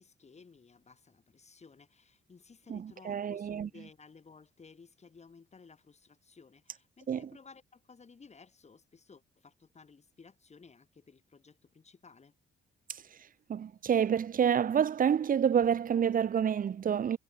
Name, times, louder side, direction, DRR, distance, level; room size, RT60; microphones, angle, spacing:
voice 1, 0.0-12.3, left 5 dB, 35° left, 7.3 m, -56 dB
voice 2, 2.7-3.7 7.1-7.2 13.5-17.2, right 8 dB, 45° right, 0.9 m, -28 dB
cardioid pair, 90°, 20 cm